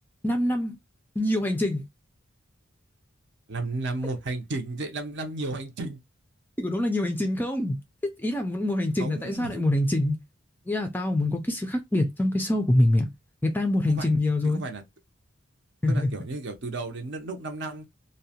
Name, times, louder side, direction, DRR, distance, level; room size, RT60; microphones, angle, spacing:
voice 1, 0.2-0.8 1.2-1.8 6.6-7.8 8.0-10.2 10.7-13.1 13.4-14.6 15.8-16.1, left 1 dB, 10° left, 0.3 m, -25 dB
voice 2, 3.5-6.0 9.0-9.6 14.0-14.2 14.5-14.8 15.9-17.9, right 2 dB, 55° right, 0.6 m, -33 dB
2.7 x 2.1 x 2.7 m
head